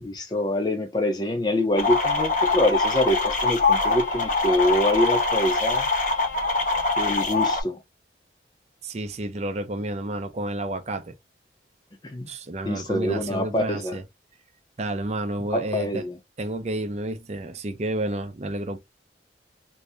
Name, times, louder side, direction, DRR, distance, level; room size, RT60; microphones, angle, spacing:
voice 1, 0.0-5.9 7.0-7.8 12.1-12.3 12.6-13.9 15.5-16.1, left 1 dB, 25° left, 0.4 m, -25 dB
sound 1, 1.8-7.6, left 3 dB, 45° left, 0.8 m, -23 dB
voice 2, 8.8-11.1 12.3-14.0 14.8-16.1 16.4-18.8, right 1 dB, 40° right, 0.5 m, -30 dB
2.7 x 2.7 x 3.3 m
head